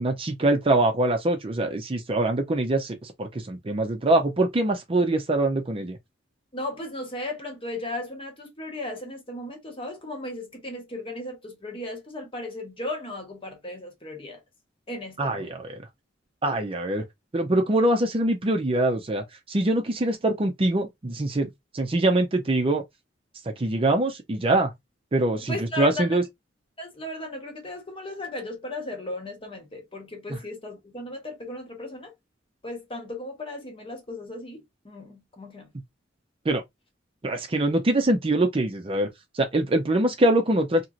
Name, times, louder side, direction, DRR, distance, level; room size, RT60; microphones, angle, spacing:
voice 1, 0.0-6.0 15.2-15.8 16.4-17.0 17.3-22.8 23.5-24.7 25.1-26.2 36.5-36.6 37.2-39.1 39.3-40.9, right 2 dB, 30° right, 0.5 m, -24 dB
voice 2, 6.5-14.4 14.9-15.5 25.5-26.2 26.8-32.1 32.6-35.7, left 2 dB, 30° left, 1.0 m, -36 dB
2.9 x 2.9 x 2.5 m
head